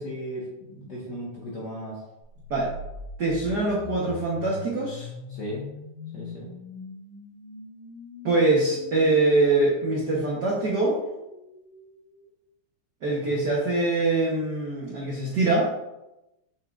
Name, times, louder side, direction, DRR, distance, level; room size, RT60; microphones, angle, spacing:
voice 1, 0.0-2.0 5.3-5.6 6.1-6.5 13.2-13.4, equal, 50° left, -5 dB, 1.3 m, -36 dB
sound 1, 2.4-12.2, left 2 dB, 85° left, 3.0 m, -42 dB
voice 2, 3.2-5.1 8.2-11.0 13.0-15.7, right 2 dB, 80° right, -4 dB, 0.9 m, -23 dB
7.1 x 5.8 x 2.5 m, 0.94 s
omnidirectional pair, 3.4 m